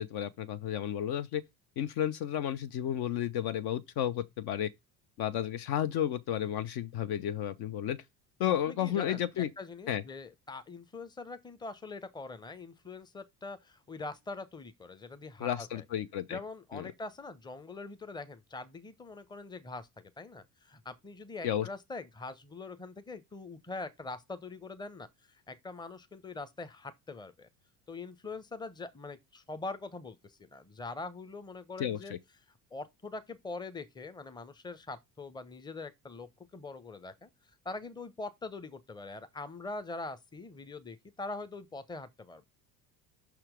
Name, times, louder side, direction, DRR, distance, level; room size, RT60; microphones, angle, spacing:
voice 1, 0.0-1.4 1.8-4.7 5.2-8.0 8.4-9.5 9.9-10.0 15.4-16.4 16.7-16.9 21.4-21.7 31.8-32.2, left 10 dB, 50° left, 0.8 m, -32 dB
voice 2, 8.7-15.8 16.3-27.5 27.9-32.1 32.7-37.3 37.6-42.4, left 3 dB, 10° left, 0.8 m, -43 dB
5.9 x 4.4 x 5.0 m
figure-of-eight pair, 65°, 50 cm